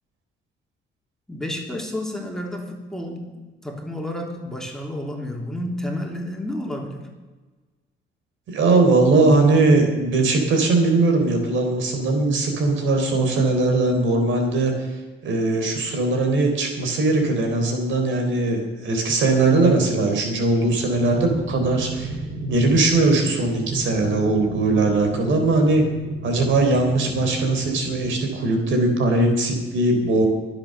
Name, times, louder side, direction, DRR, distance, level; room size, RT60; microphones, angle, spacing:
voice 1, 1.3-7.1, left 1 dB, ahead, 0 dB, 3.3 m, -31 dB
voice 2, 8.5-14.7 15.2-22.1 22.4-25.8 26.2-30.3, right 2 dB, 75° right, 4 dB, 3.9 m, -20 dB
sound 1, 20.5-28.5, right 2 dB, 60° right, 2.4 m, -35 dB
23.0 x 8.1 x 6.7 m, 1.3 s
cardioid pair, 90°, 20 cm